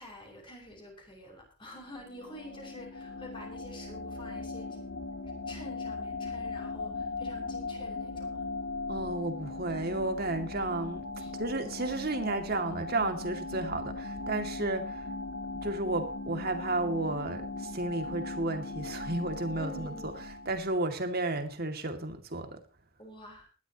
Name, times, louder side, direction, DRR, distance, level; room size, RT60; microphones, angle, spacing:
voice 1, 0.0-4.8 5.5-8.4 11.2-11.3 19.5-20.3 23.0-23.5, left 1 dB, 25° left, 6.3 m, -47 dB
sound 1, 1.9-20.8, left 3 dB, 70° left, 1.9 m, -39 dB
voice 2, 8.9-11.0 11.3-15.0 15.6-19.9 20.5-22.6, right 2 dB, 50° right, 2.4 m, -32 dB
20.0 x 12.5 x 3.0 m
head